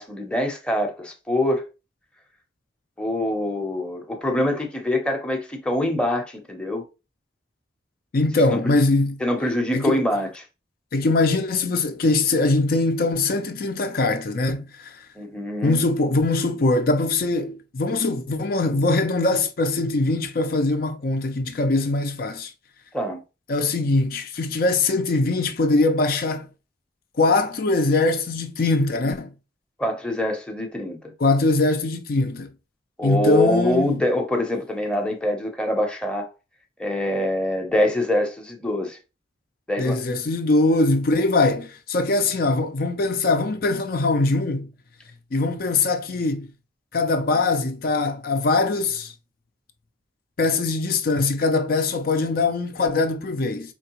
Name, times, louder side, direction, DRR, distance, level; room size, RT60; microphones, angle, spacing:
voice 1, 0.0-1.7 3.0-6.8 8.5-8.7 9.2-10.3 15.2-15.8 22.9-23.2 29.8-31.0 33.0-36.3 36.8-39.0 39.7-40.0, left 1 dB, 5° left, 0.7 m, -24 dB
voice 2, 8.1-9.2 9.7-10.0 10.9-15.0 15.6-22.5 23.5-26.5 27.2-29.3 31.2-32.5 33.0-34.0 39.8-44.7 45.3-46.5 46.9-49.1 50.4-53.7, left 2 dB, 50° left, 0.5 m, -22 dB
4.5 x 3.3 x 2.9 m
head